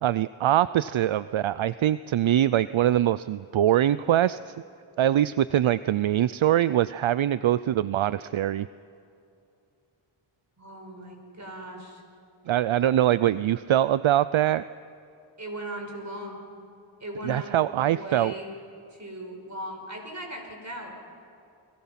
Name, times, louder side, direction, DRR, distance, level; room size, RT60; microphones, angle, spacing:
voice 1, 0.0-4.5 5.0-8.7 12.5-14.6 17.2-18.3, right 12 dB, 70° right, 16 dB, 0.5 m, -23 dB
voice 2, 10.6-12.0 15.4-16.4 17.0-18.5 18.9-21.0, right 1 dB, 35° right, 2 dB, 5.8 m, -38 dB
30.0 x 21.5 x 5.9 m, 2.6 s
wide cardioid pair, 65°, 49 cm